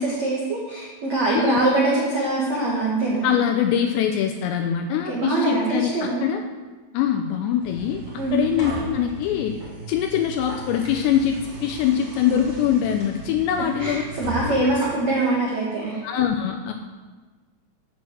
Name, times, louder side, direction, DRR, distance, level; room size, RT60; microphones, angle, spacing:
voice 1, 0.0-3.4 5.1-6.2 8.2-8.4 13.8-16.0, right 2 dB, 80° right, -5 dB, 1.5 m, -23 dB
voice 2, 3.2-6.4 6.9-8.0 8.3-9.6 9.9-14.0 14.4-14.6 16.0-16.7, left 9 dB, 85° left, 4 dB, 2.6 m, -23 dB
sound 1, 7.6-14.6, right 4 dB, 40° right, 3.7 m, -39 dB
sound 2, 8.0-9.7 10.3-11.4 12.4-12.6 13.0-13.1 13.6-13.7 14.2-15.3, equal, 10° right, 3.1 m, -35 dB
8.8 x 6.0 x 7.6 m, 1.3 s
omnidirectional pair, 5.6 m